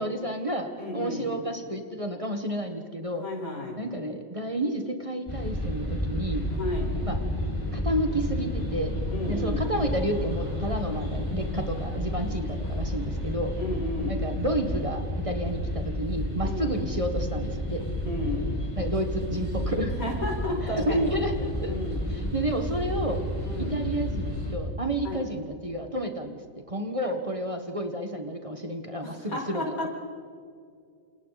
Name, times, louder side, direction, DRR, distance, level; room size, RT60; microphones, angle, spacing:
voice 1, 0.0-3.2 3.8-6.4 7.0-7.2 7.7-8.9 9.3-13.5 14.0-17.8 18.7-19.9 20.7-21.7 22.1-23.2 23.6-26.4 26.7-29.9, right 1 dB, 25° right, 4 dB, 1.6 m, -31 dB
voice 2, 0.8-1.3 3.1-3.8 6.5-7.0 9.1-9.7 13.6-14.3 16.4-16.8 18.0-18.6 20.0-21.2 21.7-22.0 23.4-23.8 25.0-25.3 29.0-29.9, left 1 dB, 90° left, -1 dB, 5.6 m, -33 dB
sound 1, 5.3-24.5, left 1 dB, 20° left, 6.1 m, -31 dB
28.5 x 28.0 x 4.2 m, 2.3 s
omnidirectional pair, 1.4 m